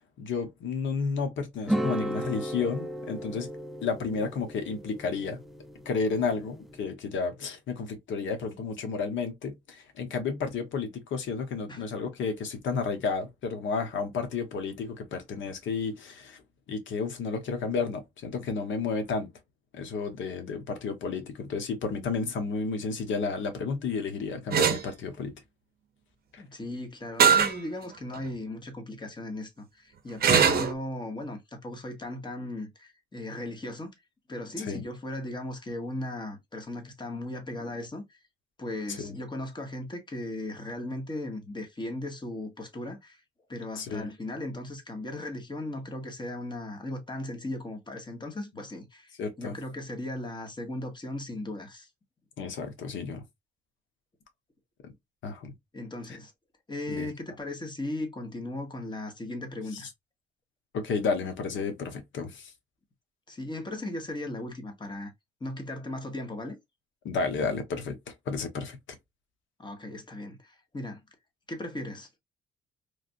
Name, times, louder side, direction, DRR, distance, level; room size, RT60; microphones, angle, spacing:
voice 1, 0.2-3.5 3.8-5.4 5.8-16.4 16.7-19.3 19.7-25.3 26.3-26.4 30.3-30.7 34.6-34.8 38.9-39.2 43.8-44.1 49.2-49.5 52.4-53.2 54.8-54.9 55.2-55.5 56.1-56.2 56.9-57.1 59.7-59.8 60.7-62.5 67.0-68.8, left 5 dB, 70° left, 1.0 m, -32 dB
sound 1, 1.7-6.8, equal, ahead, 0.4 m, -35 dB
sound 2, 24.5-24.8 27.2-27.6 28.1-28.2 30.2-30.7, right 7 dB, 50° right, 0.6 m, -21 dB
voice 2, 26.4-33.9 34.3-38.2 38.6-43.2 43.5-51.9 55.7-56.3 56.7-59.9 63.3-65.1 65.4-66.6 69.6-71.0 71.5-72.1, left 1 dB, 25° left, 1.1 m, -37 dB
3.3 x 2.5 x 2.5 m
cardioid pair, 90°, 20 cm